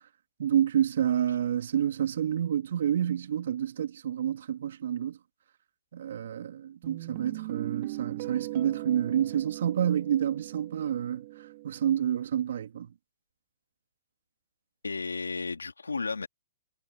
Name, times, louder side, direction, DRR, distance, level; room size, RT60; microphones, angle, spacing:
voice 1, 0.4-5.2 5.9-12.9, right 10 dB, 65° right, 2.3 m, -29 dB
Guitar, 6.8-11.9, right 20 dB, 45° right, 3.0 m, -39 dB
voice 2, 14.8-16.3, left 4 dB, 90° left, 3.4 m, -33 dB
hypercardioid pair, 125°, 0 cm